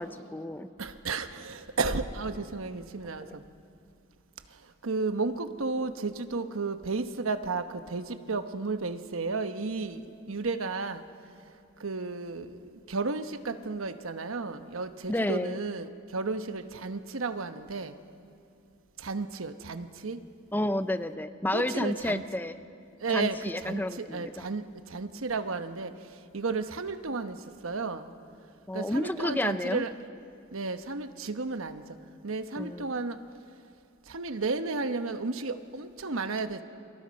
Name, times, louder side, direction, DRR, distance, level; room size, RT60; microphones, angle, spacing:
voice 1, 0.0-0.7 3.3-3.4 15.1-15.6 20.5-22.6 23.1-24.5 28.7-29.8 32.6-32.9, left 1 dB, 10° left, 11 dB, 0.5 m, -31 dB
voice 2, 0.8-3.4 4.8-11.0 11.8-18.0 19.0-20.2 21.5-22.2 23.0-25.9 26.3-27.4 27.6-28.1 28.7-29.9 30.5-31.8 32.2-33.2 34.1-36.6, right 3 dB, 85° right, 9 dB, 1.0 m, -33 dB
29.0 x 24.0 x 5.3 m, 2.5 s
head